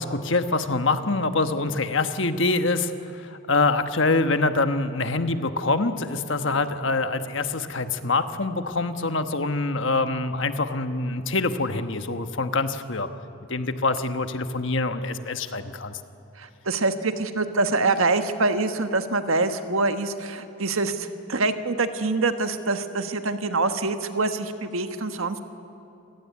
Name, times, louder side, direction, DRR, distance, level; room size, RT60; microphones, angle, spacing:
voice 1, 0.0-13.1 13.5-16.0, left 3 dB, 60° left, 8 dB, 1.2 m, -25 dB
voice 2, 16.4-25.4, right 3 dB, 75° right, 8 dB, 1.4 m, -25 dB
27.5 x 17.5 x 9.6 m, 2.8 s
head